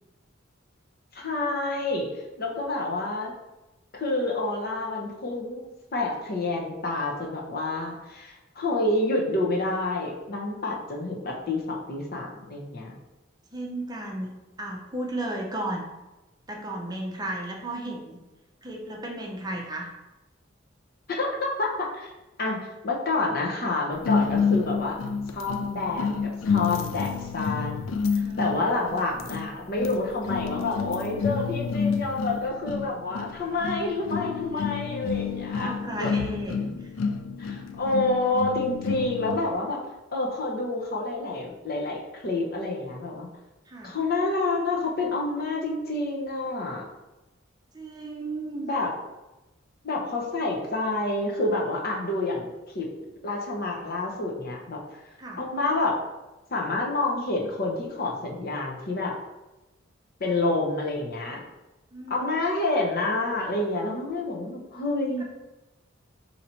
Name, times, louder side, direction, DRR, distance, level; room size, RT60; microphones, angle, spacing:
voice 1, 1.1-2.1 2.4-3.3 3.9-5.6 5.9-13.0 21.1-22.1 22.4-22.6 22.8-25.0 25.3-27.9 28.1-36.1 37.4-39.8 40.1-43.3 43.8-46.8 48.6-48.9 49.8-52.9 53.2-54.8 55.4-55.9 56.5-59.1 60.2-61.4 62.1-65.2, left 2 dB, 50° left, -1 dB, 0.8 m, -28 dB
voice 2, 13.5-14.3 14.6-15.9 16.5-18.2 18.6-19.9 28.2-28.7 33.5-33.8 35.5-36.8 43.7-44.0 47.7-48.7 55.2-55.4 61.9-62.3, right 1 dB, 20° right, -1 dB, 0.6 m, -34 dB
sound 1, 24.0-39.5, left 5 dB, 85° left, 0.3 m, -29 dB
4.1 x 2.8 x 4.3 m, 1.0 s
head